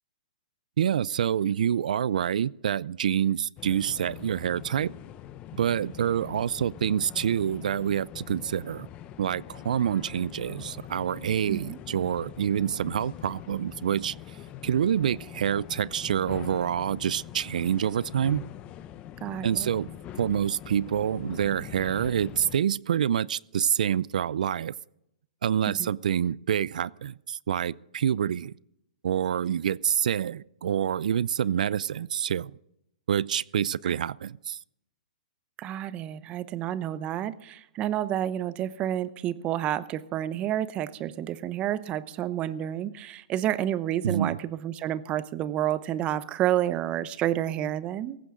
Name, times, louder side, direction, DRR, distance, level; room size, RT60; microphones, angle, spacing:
voice 1, 0.8-4.9 5.5-8.9 9.2-14.1 14.6-18.4 19.4-19.9 20.2-24.7 25.4-28.5 29.0-32.5 33.1-34.6 44.0-44.4, right 9 dB, 70° right, 0.5 m, -27 dB
sound 1, 3.6-22.6, left 11 dB, 25° left, 0.8 m, -43 dB
voice 2, 19.2-19.7 25.7-25.9 33.8-34.0 35.6-48.2, right 12 dB, 25° right, 0.8 m, -30 dB
17.5 x 15.5 x 3.8 m
hypercardioid pair, 135°, 4 cm